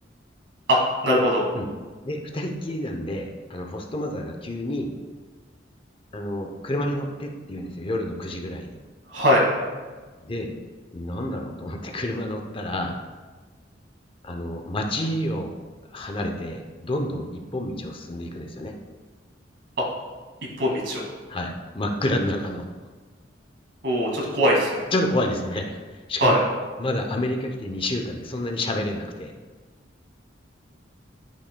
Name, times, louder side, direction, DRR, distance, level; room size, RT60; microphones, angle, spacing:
voice 1, 0.7-1.4 9.1-9.4 19.8-19.9 20.6-21.0 23.8-24.8 26.2-26.4, equal, 75° right, -2 dB, 2.0 m, -21 dB
voice 2, 2.0-4.9 6.1-8.8 10.2-10.5 10.9-13.0 14.2-15.6 15.9-18.7 21.3-22.6 24.9-26.3 26.8-29.3, left 1 dB, 30° left, 3 dB, 0.6 m, -29 dB
12.0 x 5.4 x 2.2 m, 1.4 s
head